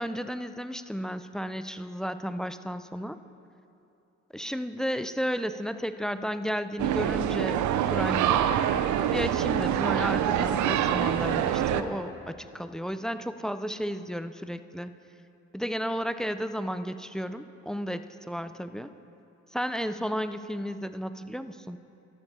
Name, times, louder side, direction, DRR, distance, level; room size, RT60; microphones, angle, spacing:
voice 1, 0.0-3.2 4.3-8.5 9.1-14.9 15.5-18.9 19.5-21.8, equal, ahead, 11 dB, 0.3 m, -33 dB
sound 1, 6.8-11.8, right 10 dB, 75° right, 0.6 m, -25 dB
13.0 x 8.2 x 5.4 m, 2.8 s
cardioid pair, 90°, 30 cm